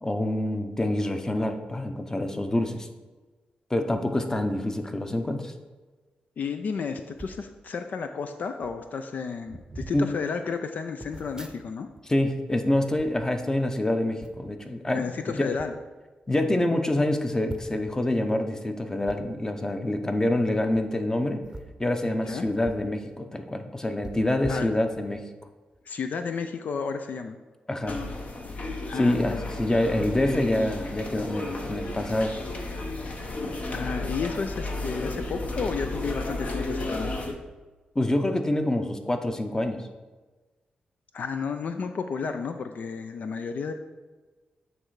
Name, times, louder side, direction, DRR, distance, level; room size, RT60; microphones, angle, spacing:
voice 1, 0.0-2.9 3.7-5.5 9.9-10.1 12.1-15.5 16.3-21.4 21.8-25.2 27.7-28.0 29.0-32.3 37.9-39.8, left 1 dB, 20° left, 7 dB, 0.8 m, -26 dB
voice 2, 6.4-11.9 14.9-15.8 22.2-22.5 24.4-24.7 25.9-27.4 28.9-29.4 33.7-37.2 41.1-43.7, left 5 dB, 65° left, 7 dB, 0.4 m, -32 dB
sound 1, 7.1-7.4 8.3-8.4 8.6-8.9 9.4-10.0 11.0-12.0 12.3-13.7 14.2-14.5 15.3-15.7 16.2-16.3 16.6-16.7 17.4-17.9 19.0-19.2 20.6-20.8 21.4-22.9 23.2-23.3 24.0-25.2 25.7-25.9, right 2 dB, 20° right, 0.7 m, -43 dB
sound 2, 27.9-37.3, left 2 dB, 50° left, 0.9 m, -33 dB
8.5 x 3.3 x 4.8 m, 1.3 s
cardioid pair, 65°, 3 cm